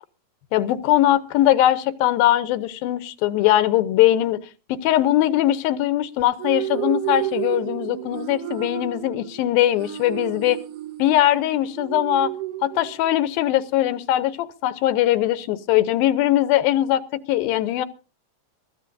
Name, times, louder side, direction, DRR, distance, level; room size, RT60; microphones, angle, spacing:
voice 1, 0.5-4.4 4.7-10.6 11.0-12.3 12.6-17.9, left 13 dB, 90° left, 2.6 m, -20 dB
sound 1, 6.2-13.2, right 14 dB, 70° right, 2.5 m, -31 dB
22.5 x 14.0 x 2.6 m
omnidirectional pair, 4.1 m